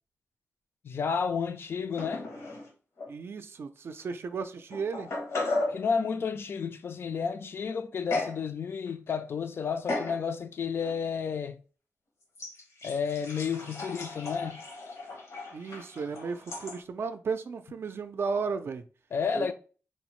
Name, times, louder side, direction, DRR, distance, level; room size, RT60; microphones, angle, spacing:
voice 1, 0.8-2.3 5.7-11.6 12.8-14.6 19.1-19.5, left 6 dB, 55° left, 0.3 m, -31 dB
sound 1, 2.0-2.7 3.0-3.1 4.0-4.1 4.7-5.8 8.1-8.4 8.9-9.2 9.9-10.2 10.8-10.9 12.3-16.8, left 2 dB, 85° left, 0.9 m, -35 dB
voice 2, 3.1-5.1 15.5-18.8 19.3-19.5, right 5 dB, 55° right, 0.4 m, -34 dB
4.3 x 2.0 x 3.0 m
wide cardioid pair, 125°, 5 cm